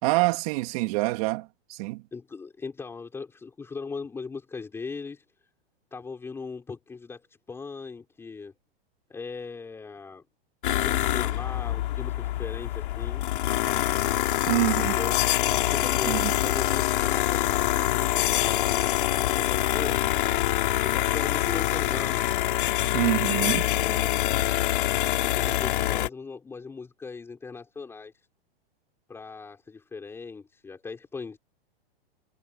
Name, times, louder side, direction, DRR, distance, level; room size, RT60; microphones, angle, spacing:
voice 1, 0.0-2.0 14.5-14.9 16.1-16.3 22.9-23.7, right 24 dB, 35° right, 3.0 m, -26 dB
voice 2, 2.1-5.2 5.9-8.5 9.1-10.2 10.8-13.2 14.8-15.2 15.7-20.0 20.8-22.3 23.7-24.3 25.2-28.1 29.1-31.4, left 4 dB, 10° left, 5.3 m, -39 dB
sound 1, 10.6-26.1, left 14 dB, 55° left, 4.4 m, -25 dB
supercardioid pair, 170°, 30 cm